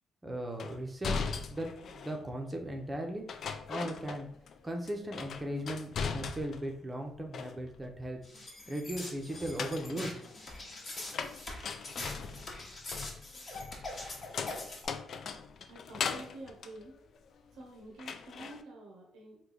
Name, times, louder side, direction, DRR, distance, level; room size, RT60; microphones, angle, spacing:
voice 1, 0.2-1.2 1.5-3.3 3.7-4.3 4.6-8.2 8.7-10.2, right 1 dB, 20° right, 2 dB, 0.6 m, -37 dB
sound 1, 0.6-2.2 3.3-4.6 4.9-6.7 7.1-7.9 9.3-17.6 18.0-18.6, left 6 dB, 60° left, 0.3 m, -39 dB
sound 2, 8.2-14.9, left 2 dB, 40° left, 1.0 m, -43 dB
voice 2, 15.7-17.0 17.5-19.4, right 2 dB, 85° right, 0 dB, 0.7 m, -49 dB
3.1 x 2.2 x 3.8 m, 0.66 s
cardioid pair, 90°, 0 cm